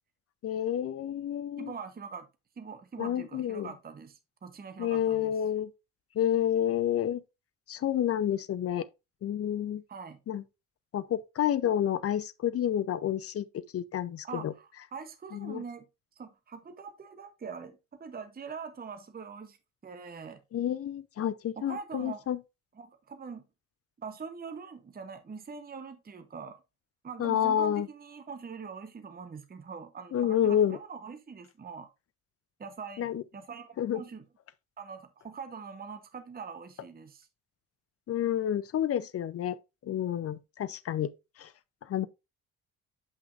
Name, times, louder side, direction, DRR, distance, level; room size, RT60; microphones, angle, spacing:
voice 1, 0.4-1.7 3.0-3.7 4.8-5.7 6.2-7.2 7.7-8.9 9.2-9.8 10.3-10.4 10.9-14.5 15.3-15.6 20.5-22.4 27.2-27.9 30.1-30.8 33.0-33.2 33.8-34.0 38.1-39.6 39.8-41.1 41.4-41.5 41.9-42.1, left 10 dB, 35° left, 0.6 m, -29 dB
voice 2, 1.6-2.3 2.6-5.4 9.9-10.2 14.2-15.8 16.2-19.6 19.8-20.4 21.6-22.2 22.8-23.4 24.0-26.6 27.0-31.9 32.6-34.2 34.8-37.3, right 5 dB, 20° right, 1.0 m, -43 dB
8.3 x 5.7 x 2.5 m
figure-of-eight pair, 45°, 43 cm